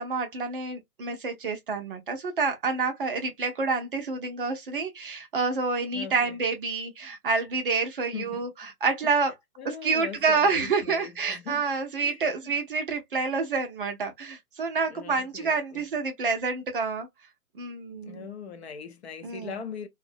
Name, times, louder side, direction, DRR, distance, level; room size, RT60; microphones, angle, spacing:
voice 1, 0.0-9.3 9.6-17.1 17.6-18.3 19.2-19.5, right 4 dB, 40° right, 0.6 m, -28 dB
voice 2, 5.9-6.4 8.1-8.5 9.0-9.2 9.6-11.6 12.0-12.5 14.9-15.8 18.0-19.9, left 7 dB, 45° left, 0.6 m, -41 dB
2.5 x 2.1 x 2.4 m
figure-of-eight pair, 135°, 45 cm